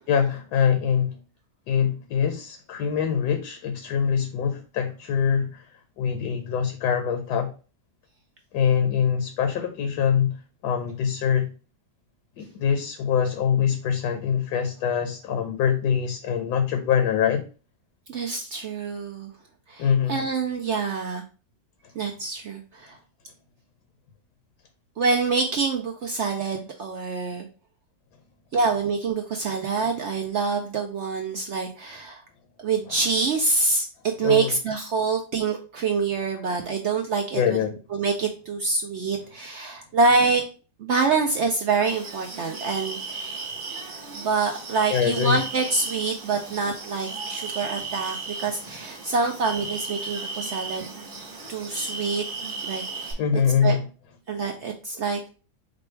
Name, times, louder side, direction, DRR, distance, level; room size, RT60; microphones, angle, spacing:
voice 1, 0.1-1.1 1.7-5.6 6.0-7.5 8.5-10.3 10.6-11.5 12.4-17.4 19.8-20.2 32.9-33.0 34.2-34.5 37.3-37.7 42.5-42.6 44.9-45.4 53.2-53.9, left 7 dB, 75° left, 1.2 m, -24 dB
voice 2, 18.1-19.3 19.7-21.2 22.0-23.0 25.0-27.5 28.5-32.2 32.6-37.6 37.9-40.4 40.8-43.5 44.1-50.9 51.5-52.2 52.6-53.2 53.6-53.8 54.3-55.2, right 4 dB, 70° right, 0.6 m, -26 dB
sound 1, 41.9-53.1, right 3 dB, 35° right, 1.2 m, -35 dB
5.1 x 2.3 x 4.4 m
omnidirectional pair, 1.8 m